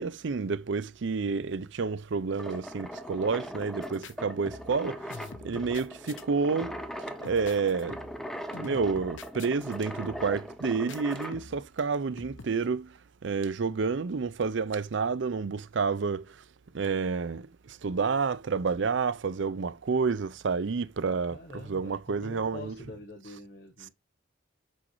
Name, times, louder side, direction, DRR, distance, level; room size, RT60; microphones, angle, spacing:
voice 1, 0.0-5.2 5.4-6.8 7.2-8.0 8.5-12.9 13.2-16.4 16.7-22.8, right 5 dB, 60° right, 0.5 m, -29 dB
sound 1, 2.4-11.4, equal, ahead, 0.7 m, -40 dB
sound 2, 3.8-4.1 4.5-4.8 5.1-6.2 6.6-7.0 7.2-8.3 8.5-9.8 10.0-10.4 10.9-11.7 12.2-12.5, left 3 dB, 65° left, 0.8 m, -45 dB
voice 2, 21.3-23.9, left 2 dB, 45° left, 1.3 m, -45 dB
6.2 x 6.0 x 3.1 m
head